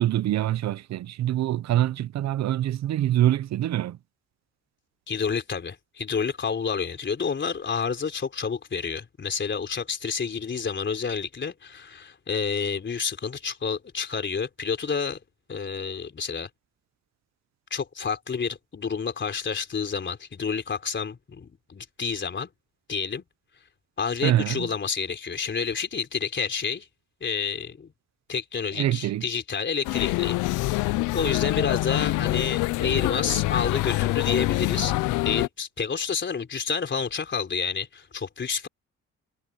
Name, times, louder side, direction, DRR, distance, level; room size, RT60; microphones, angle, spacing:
voice 1, 0.0-4.0 24.2-24.7 28.7-29.3, right 13 dB, 65° right, 0.7 m, -25 dB
voice 2, 5.1-15.2 15.5-16.5 17.7-22.5 22.9-23.2 24.0-26.9 27.2-27.9 28.3-34.9 35.2-38.7, left 6 dB, 40° left, 3.7 m, -29 dB
sound 1, 29.8-35.5, left 19 dB, 90° left, 0.5 m, -25 dB
cardioid pair, 90°, 30 cm